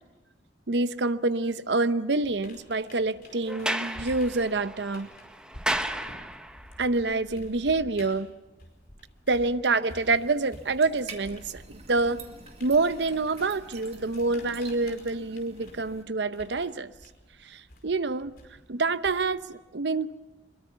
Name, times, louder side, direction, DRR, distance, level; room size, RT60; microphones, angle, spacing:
voice 1, 0.7-5.1 6.8-8.3 9.3-12.2 12.6-16.9 17.4-18.3 18.7-20.1, right 3 dB, 70° right, 13 dB, 0.8 m, -27 dB
sound 1, 2.2-9.5 9.9-19.5, left 1 dB, 55° left, 4.9 m, -49 dB
Sliding door, 3.5-6.7, right 1 dB, 5° right, 0.9 m, -33 dB
sound 2, 10.0-16.0, right 4 dB, 35° right, 2.0 m, -47 dB
24.0 x 22.0 x 6.9 m, 1.1 s
head